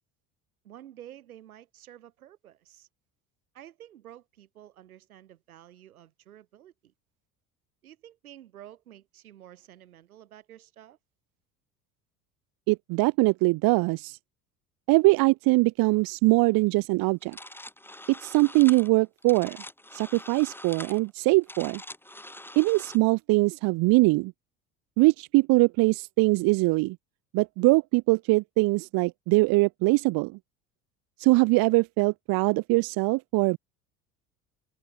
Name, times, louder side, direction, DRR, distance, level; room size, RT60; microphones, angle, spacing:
voice 1, 0.6-2.9 3.5-6.9 7.8-11.0, right 12 dB, 85° right, 4.6 m, -50 dB
voice 2, 12.7-14.2 14.9-17.4 18.2-19.6 19.9-21.8 22.6-24.3 25.0-27.0 27.3-30.4 31.2-33.6, right 24 dB, 55° right, 0.7 m, -22 dB
sound 1, 17.2-23.0, left 1 dB, 5° left, 3.6 m, -44 dB
open air
hypercardioid pair, 65°, 42 cm